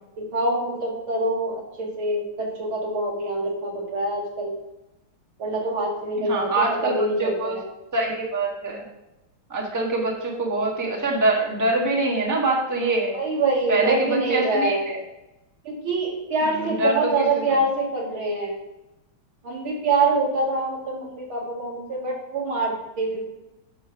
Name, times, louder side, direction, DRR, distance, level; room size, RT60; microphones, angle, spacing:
voice 1, 0.2-4.6 5.4-7.6 13.1-14.8 15.6-18.6 19.4-23.2, right 2 dB, 80° right, -2 dB, 2.8 m, -25 dB
voice 2, 6.3-6.9 7.2-7.6 7.9-8.8 9.5-13.2 13.7-15.0 16.5-17.0 17.5-17.6, right 2 dB, 10° right, -1 dB, 1.2 m, -24 dB
7.4 x 5.5 x 5.8 m, 0.97 s
omnidirectional pair, 2.3 m